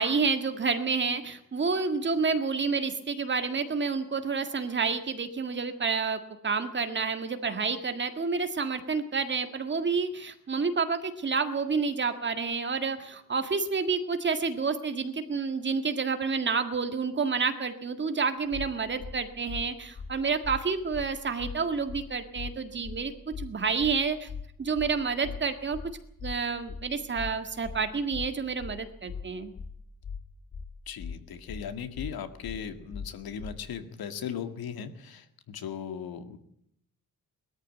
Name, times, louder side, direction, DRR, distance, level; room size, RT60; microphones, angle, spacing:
voice 1, 0.0-23.1 23.4-24.3 24.6-25.8 26.2-29.5, right 5 dB, 30° right, 8 dB, 1.8 m, -29 dB
sound 1, 18.5-18.7 19.0-19.1 19.5-19.6 19.9-20.1 20.4-20.6 20.9-21.1 21.4-21.5 21.9-22.0 22.3-22.5 22.8-23.0 23.3-23.5 23.8-23.9 24.3-24.4 24.7-24.9 25.2-25.4 25.7-25.9 26.2-26.3 26.7-26.8 27.1-27.3 27.6-27.8 28.1-28.3 28.6-28.7 29.1-29.2 29.5-29.7 30.0-30.2 30.5-30.7 31.0-31.1 31.5-31.6 31.9-32.1 32.4-32.6 32.9-33.1 33.4-33.5, left 6 dB, 45° left, 2.4 m, -38 dB
voice 2, 30.9-36.4, left 7 dB, 75° left, 9 dB, 2.1 m, -38 dB
21.0 x 13.5 x 9.2 m, 0.74 s
wide cardioid pair, 180°, 36 cm